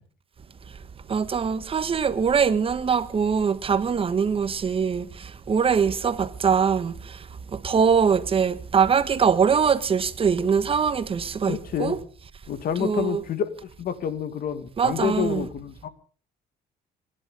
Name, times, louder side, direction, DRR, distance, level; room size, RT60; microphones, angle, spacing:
voice 1, 1.1-7.2 7.5-12.0 12.8-13.2 14.8-15.5, right 6 dB, 35° right, 1.3 m, -23 dB
voice 2, 11.5-12.0 12.5-15.9, left 8 dB, 60° left, 2.0 m, -28 dB
24.5 x 11.0 x 5.3 m
cardioid pair, 110°, 17 cm